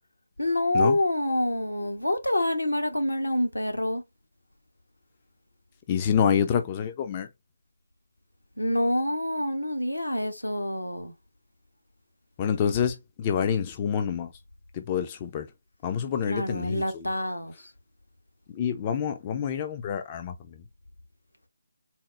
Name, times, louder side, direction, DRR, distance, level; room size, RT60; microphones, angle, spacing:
voice 1, 0.4-4.0 8.6-11.1 16.3-17.5, left 1 dB, 80° left, 1.1 m, -27 dB
voice 2, 5.9-7.3 12.4-14.3 14.7-15.5 15.8-17.1 18.5-20.4, left 8 dB, 25° left, 0.4 m, -27 dB
4.2 x 2.0 x 3.6 m
figure-of-eight pair, 150°, 0 cm